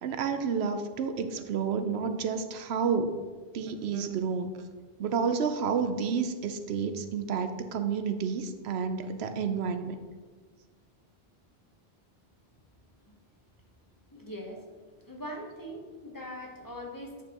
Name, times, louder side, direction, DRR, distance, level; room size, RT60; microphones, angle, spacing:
voice 1, 0.0-3.2 3.5-4.5 5.0-10.0, right 6 dB, 85° right, 8 dB, 0.9 m, -30 dB
voice 2, 14.1-14.8 15.0-17.2, equal, 20° left, 0 dB, 1.0 m, -41 dB
8.9 x 5.9 x 3.0 m, 1.4 s
omnidirectional pair, 1.1 m